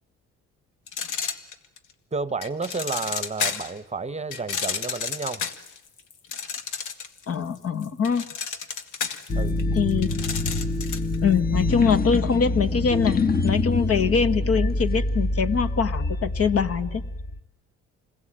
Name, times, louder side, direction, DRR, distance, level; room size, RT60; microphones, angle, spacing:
sound 1, 0.9-1.9 2.4-3.8 4.3-7.2 7.6-11.2, left 6 dB, 85° left, 2.0 m, -31 dB
voice 1, 2.1-5.5 9.3-9.6, right 4 dB, 20° right, 16 dB, 0.9 m, -31 dB
voice 2, 7.3-8.3 9.7-10.1 11.2-17.0, left 6 dB, 50° left, 10 dB, 1.5 m, -23 dB
sound 2, 9.3-17.4, left 2 dB, 30° left, 1.2 m, -25 dB
27.5 x 21.0 x 8.9 m, 0.87 s
cardioid pair, 90°, 30 cm